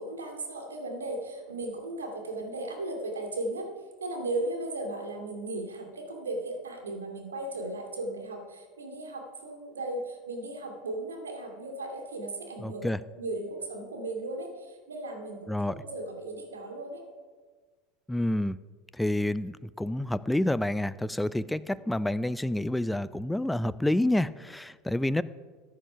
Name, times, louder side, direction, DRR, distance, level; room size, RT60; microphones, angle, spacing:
voice 1, 0.0-3.7 4.0-12.9 13.2-17.0, right 2 dB, 90° right, 2 dB, 2.4 m, -36 dB
voice 2, 12.6-13.0 15.5-15.7 18.1-18.6 18.9-25.2, left 1 dB, 5° left, 16 dB, 0.6 m, -28 dB
14.5 x 10.5 x 5.7 m, 1.4 s
hypercardioid pair, 80°, 0 cm